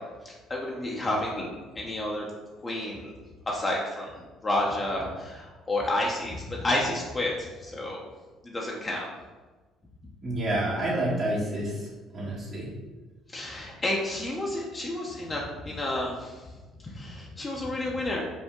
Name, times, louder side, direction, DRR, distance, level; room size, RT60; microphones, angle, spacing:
voice 1, 0.2-1.5 1.8-2.3 2.6-3.1 3.5-7.4 7.6-8.0 8.4-9.1 13.3-16.4 16.9-18.2, left 1 dB, 30° left, -3 dB, 0.7 m, -30 dB
voice 2, 10.2-11.8 12.1-12.7, right 1 dB, 45° right, -7 dB, 1.5 m, -28 dB
5.3 x 2.1 x 3.7 m, 1.3 s
supercardioid pair, 70°, 0 cm